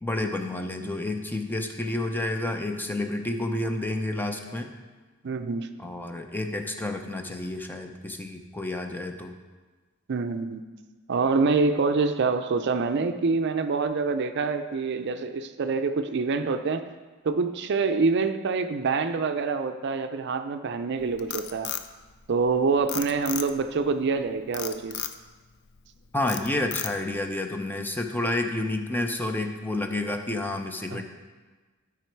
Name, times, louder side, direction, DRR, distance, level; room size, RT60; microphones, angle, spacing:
voice 1, 0.0-4.7 5.8-9.4 26.1-31.0, left 2 dB, 10° left, 4 dB, 0.6 m, -30 dB
voice 2, 5.2-5.7 10.1-10.6 11.1-16.8 17.2-21.7 22.3-25.0 30.9-31.0, right 4 dB, 55° right, 8 dB, 0.5 m, -26 dB
Frog, 21.0-22.5 22.9-23.8 24.5-25.2 25.7-25.9 26.3-27.2, left 10 dB, 55° left, 0.5 m, -34 dB
12.0 x 5.0 x 4.5 m, 1.3 s
head